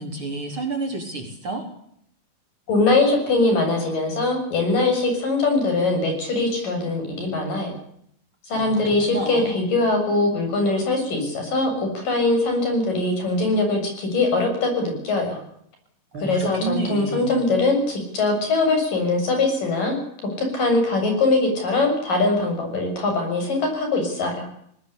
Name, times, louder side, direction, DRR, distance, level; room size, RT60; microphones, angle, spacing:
voice 1, 0.0-1.6 8.5-9.6 16.1-17.3, right 2 dB, 35° right, 3 dB, 4.6 m, -30 dB
voice 2, 2.7-7.8 8.5-15.4 16.2-20.0 20.4-24.5, left 2 dB, 60° left, 4 dB, 8.7 m, -22 dB
20.5 x 19.0 x 8.5 m, 0.69 s
omnidirectional pair, 4.4 m